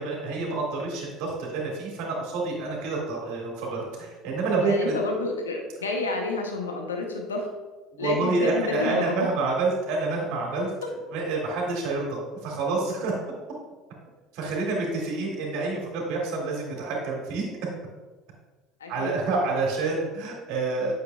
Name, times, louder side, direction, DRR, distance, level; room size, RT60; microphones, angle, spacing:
voice 1, 0.0-5.0 7.9-10.7 11.1-13.1 14.3-17.4 18.9-20.9, right 3 dB, 70° right, -2 dB, 2.2 m, -28 dB
voice 2, 4.6-7.5 8.0-9.1 18.8-19.2, left 2 dB, 90° left, 2 dB, 0.8 m, -29 dB
8.8 x 6.8 x 2.3 m, 1.3 s
hypercardioid pair, 65°, 0 cm